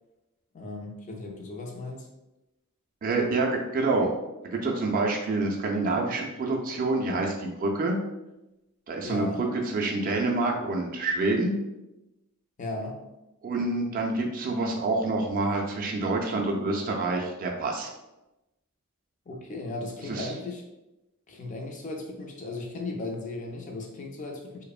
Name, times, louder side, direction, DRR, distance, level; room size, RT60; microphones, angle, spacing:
voice 1, 0.5-2.1 9.0-9.5 12.6-13.0 19.3-20.6 21.3-24.7, left 2 dB, 35° left, 1 dB, 0.4 m, -36 dB
voice 2, 3.0-4.1 4.4-8.0 8.9-11.5 13.4-17.9 20.1-20.3, right 3 dB, 40° right, 0 dB, 0.3 m, -27 dB
2.8 x 2.0 x 2.3 m, 0.97 s
head